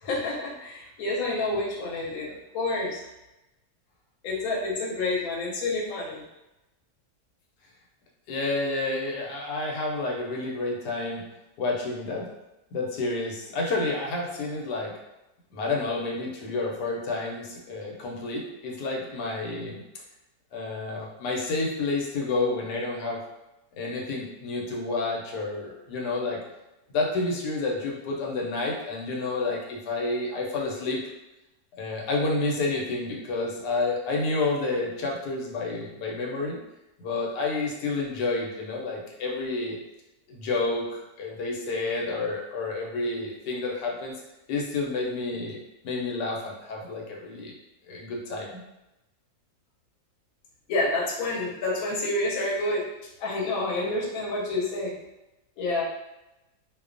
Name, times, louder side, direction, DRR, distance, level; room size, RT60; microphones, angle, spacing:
voice 1, 0.0-3.0 4.2-6.2 50.7-52.8 53.2-54.9 55.6-55.8, left 2 dB, 70° left, -2 dB, 1.0 m, -28 dB
voice 2, 8.3-11.2 11.6-12.3 12.7-14.9 15.5-19.8 20.5-23.2 23.8-26.4 26.9-31.0 31.8-36.6 37.0-39.8 40.3-44.1 44.5-45.6 45.8-47.5 47.9-48.6, left 3 dB, 90° left, -1 dB, 1.2 m, -29 dB
2.6 x 2.1 x 2.4 m, 0.95 s
omnidirectional pair, 1.7 m